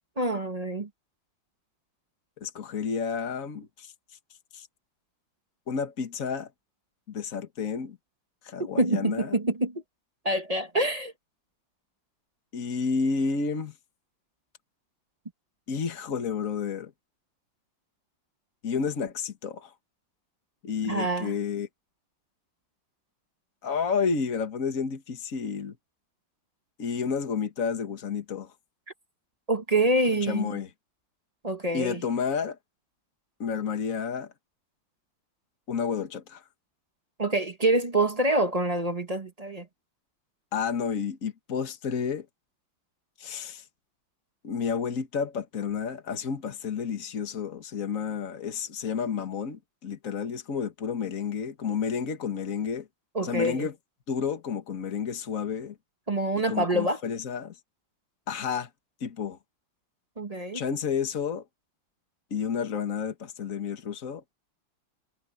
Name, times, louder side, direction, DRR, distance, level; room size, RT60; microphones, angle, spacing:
voice 1, 0.2-0.9 8.6-9.8 10.2-11.1 20.8-21.3 29.5-30.6 31.4-32.0 37.2-39.7 53.1-53.7 56.1-57.0 60.2-60.7, right 1 dB, 20° right, 1.2 m, -26 dB
voice 2, 2.4-3.9 4.5-4.7 5.7-6.5 7.1-8.0 8.4-9.4 12.5-13.7 15.7-16.9 18.6-19.7 20.6-21.7 23.6-25.8 26.8-28.5 30.2-30.7 31.7-32.6 33.4-34.3 35.7-36.4 40.5-42.3 43.2-43.6 44.4-52.9 53.2-53.7 54.1-55.8 56.5-57.5 58.3-58.7 59.0-59.4 60.5-61.4 62.3-64.2, left 6 dB, 45° left, 2.0 m, -30 dB
omnidirectional pair, 2.1 m